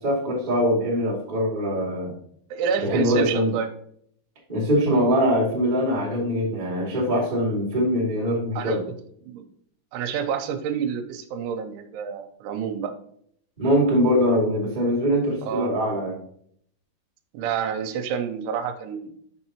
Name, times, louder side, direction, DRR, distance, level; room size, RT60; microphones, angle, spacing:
voice 1, 0.0-2.1 2.8-3.5 4.5-8.8 13.6-16.1, equal, 15° right, -5 dB, 1.4 m, -22 dB
voice 2, 2.5-3.7 8.6-8.8 9.2-9.5 9.9-12.9 15.4-15.7 17.3-19.1, right 7 dB, 85° right, 7 dB, 3.0 m, -28 dB
6.8 x 6.6 x 2.9 m, 0.66 s
omnidirectional pair, 5.4 m